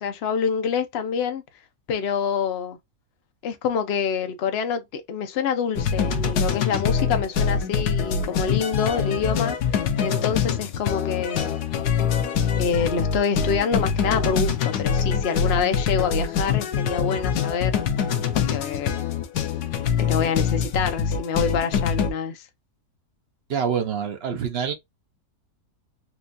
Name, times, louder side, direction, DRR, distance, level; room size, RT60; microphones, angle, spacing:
voice 1, 0.0-1.4 1.9-2.8 3.4-9.6 10.0-11.5 12.6-17.8 18.3-19.0 20.0-22.4, left 6 dB, 55° left, 0.8 m, -26 dB
sound 1, 5.8-22.1, left 6 dB, 75° left, 1.3 m, -24 dB
voice 2, 23.5-24.7, right 7 dB, 55° right, 0.7 m, -26 dB
4.4 x 2.4 x 2.6 m
omnidirectional pair, 1.7 m